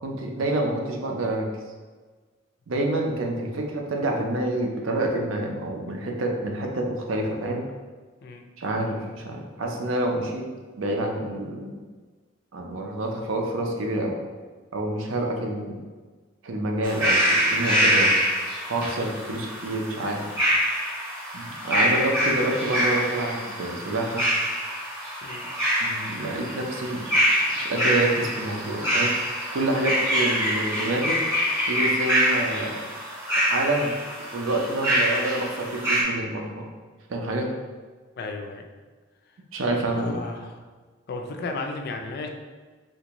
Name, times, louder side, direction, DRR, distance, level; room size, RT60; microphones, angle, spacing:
voice 1, 0.0-1.5 2.7-7.6 8.6-10.4 10.8-11.8 12.5-14.2 14.7-15.8 16.4-20.3 21.3-24.2 25.8-27.1 27.6-31.2 31.7-32.8 33.4-33.9 34.3-36.7 37.1-37.5 39.5-40.2, right 1 dB, 75° right, 1 dB, 0.5 m, -28 dB
sound 1, 16.8-36.0, equal, 10° right, 0.8 m, -25 dB
voice 2, 38.2-38.7 39.9-40.5 41.1-42.3, left 3 dB, 50° left, 3 dB, 0.3 m, -34 dB
3.4 x 2.6 x 2.9 m, 1.4 s
head